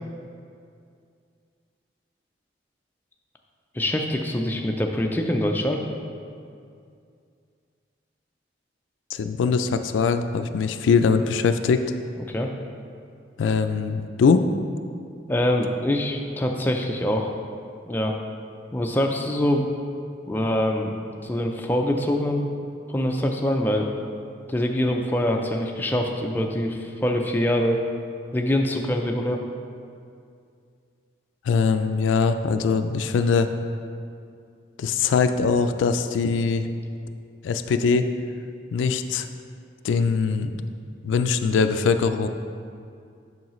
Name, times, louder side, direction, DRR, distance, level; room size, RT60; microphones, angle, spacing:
voice 1, 3.7-5.9 12.3-12.5 15.3-17.3 17.9-18.1 18.7-19.7 20.3-20.9 21.2-22.4 22.9-23.9 24.5-27.8 28.3-29.4, left 1 dB, 10° left, 1 dB, 0.3 m, -24 dB
voice 2, 9.1-11.8 13.4-14.5 31.5-33.5 34.8-36.7 37.4-38.1 38.7-39.3 39.8-40.6 41.0-42.3, left 5 dB, 90° left, 9 dB, 0.3 m, -22 dB
7.2 x 5.6 x 3.1 m, 2.4 s
head